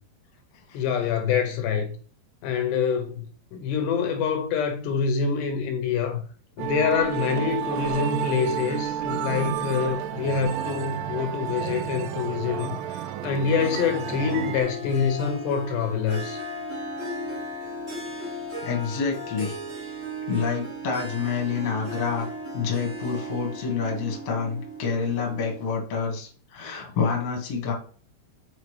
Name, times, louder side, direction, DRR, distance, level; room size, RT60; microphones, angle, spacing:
voice 1, 0.7-2.0 2.4-3.3 3.5-6.2 6.6-16.4, left 6 dB, 80° left, 2.9 m, -26 dB
sound 1, 6.6-14.6, right 10 dB, 85° right, 2.6 m, -31 dB
Harp, 13.6-25.8, equal, 45° right, 0.8 m, -36 dB
voice 2, 18.6-19.6 20.3-22.3 22.5-27.7, left 5 dB, 50° left, 2.0 m, -28 dB
6.9 x 5.1 x 3.2 m
omnidirectional pair, 5.1 m